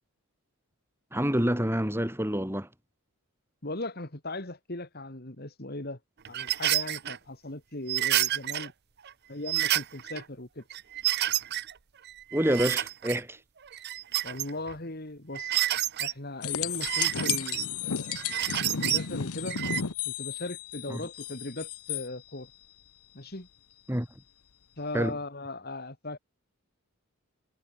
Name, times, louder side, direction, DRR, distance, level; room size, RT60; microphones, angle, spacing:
voice 1, 1.1-2.7 12.3-13.4 20.9-21.0 23.9-24.1 24.9-25.2, equal, 10° right, 3.6 m, -27 dB
voice 2, 3.6-6.0 6.3-8.7 9.3-10.6 14.2-15.6 16.0-18.2 18.8-19.6 20.0-22.5 23.1-23.5 24.8-26.2, left 2 dB, 45° left, 2.5 m, -38 dB
sound 1, 6.2-7.2 7.9-8.7 9.1-9.2 9.5-10.2 10.7-11.7 12.0-13.2 13.7-14.7 15.3-16.1 16.7-17.6 18.1-19.0 19.5-19.8, right 14 dB, 45° right, 0.6 m, -29 dB
sound 2, 16.4-22.1 25.0-25.1, left 8 dB, 85° left, 1.0 m, -33 dB
head